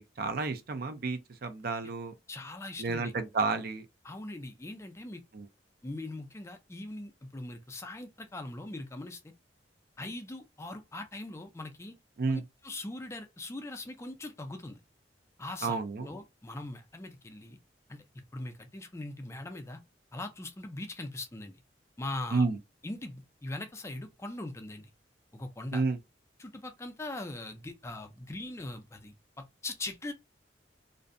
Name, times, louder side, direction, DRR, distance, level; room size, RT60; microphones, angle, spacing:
voice 1, 0.0-2.1 2.8-3.9 5.3-5.4 12.2-12.4 15.6-16.1 22.3-22.6 25.7-26.0, right 4 dB, 55° right, 0.4 m, -31 dB
voice 2, 2.3-3.1 4.0-5.2 5.8-9.3 10.0-12.0 12.3-14.8 15.4-17.6 17.9-18.0 18.3-19.8 20.1-21.6 22.0-22.4 22.8-24.9 25.3-25.8 26.4-30.1, left 2 dB, 15° left, 0.4 m, -41 dB
2.5 x 2.1 x 2.5 m
head